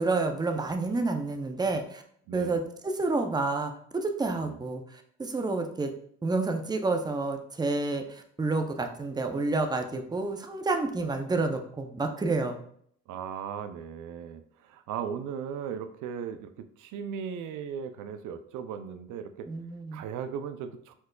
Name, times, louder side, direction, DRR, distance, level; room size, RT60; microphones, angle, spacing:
voice 1, 0.0-2.0 2.3-5.9 6.2-12.6 19.5-20.0, right 3 dB, 15° right, 5 dB, 0.5 m, -29 dB
voice 2, 2.3-2.6 4.4-4.6 13.1-19.5 19.9-20.9, right 7 dB, 80° right, 10 dB, 0.5 m, -37 dB
4.6 x 4.5 x 2.2 m, 0.65 s
cardioid pair, 90°, 30 cm